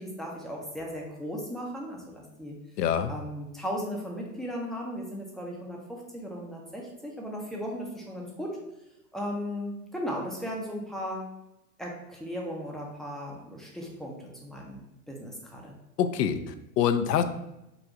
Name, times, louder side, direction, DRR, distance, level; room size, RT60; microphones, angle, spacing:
voice 1, 0.0-2.6 3.1-8.6 9.1-11.2 11.8-15.7, equal, ahead, -3 dB, 0.5 m, -36 dB
voice 2, 2.8-3.2 16.0-17.2, left 8 dB, 75° left, 9 dB, 0.6 m, -25 dB
3.9 x 2.5 x 4.4 m, 0.90 s
hypercardioid pair, 115°, 48 cm